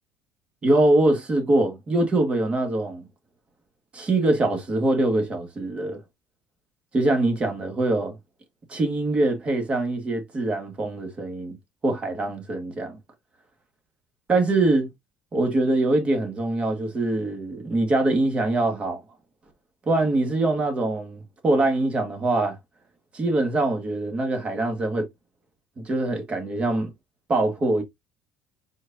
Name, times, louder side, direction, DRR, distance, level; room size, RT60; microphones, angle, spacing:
voice 1, 0.6-3.1 3.9-6.0 6.9-8.2 8.7-11.6 11.8-13.0 14.3-14.9 15.3-19.0 19.9-22.6 23.1-25.1 25.8-26.9 27.3-27.8, right 2 dB, 30° right, 1.9 m, -23 dB
4.6 x 4.3 x 2.6 m
supercardioid pair, 100°, 4 cm